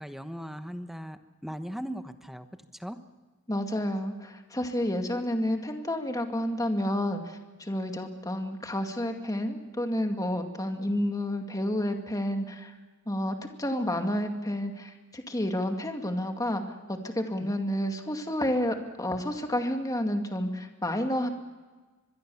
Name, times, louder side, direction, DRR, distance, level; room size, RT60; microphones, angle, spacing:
voice 1, 0.0-2.5 2.7-3.0 17.4-17.5, equal, ahead, 8 dB, 1.1 m, -38 dB
voice 2, 3.5-12.7 13.1-21.3, left 1 dB, 15° left, 4 dB, 2.3 m, -30 dB
25.0 x 21.5 x 7.1 m, 1.3 s
head